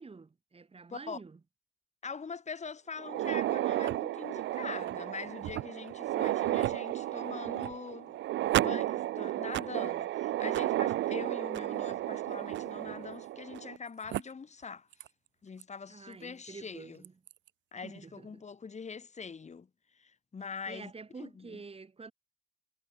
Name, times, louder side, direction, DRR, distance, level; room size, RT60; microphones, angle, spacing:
voice 1, 0.0-1.4 15.9-17.1 17.8-18.4 20.7-22.1, right 4 dB, 30° right, 5.3 m, -48 dB
voice 2, 0.9-1.2 2.0-8.2 8.6-14.9 15.4-17.0 17.7-20.9 21.2-21.6, left 5 dB, 35° left, 3.0 m, -43 dB
sound 1, 3.0-13.8 14.1-14.2 15.0-15.1 15.6-15.7 17.0-17.3, right 14 dB, 70° right, 0.5 m, -32 dB
cardioid pair, 90°, 20 cm